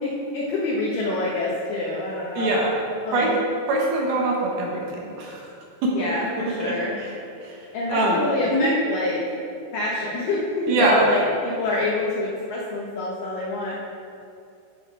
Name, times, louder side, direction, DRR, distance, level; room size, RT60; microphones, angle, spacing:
voice 1, 0.0-2.6 3.0-3.4 5.9-7.0 7.7-9.2 9.7-13.8, left 2 dB, 90° left, -5 dB, 1.8 m, -26 dB
voice 2, 2.4-2.8 3.1-3.3 3.7-5.5 5.8-6.1 6.4-6.7 7.0-7.1 7.4-7.6 7.9-8.2 8.5-8.7 10.7-11.1, right 2 dB, 70° right, -2 dB, 2.6 m, -23 dB
11.5 x 5.5 x 4.7 m, 2.6 s
omnidirectional pair, 5.3 m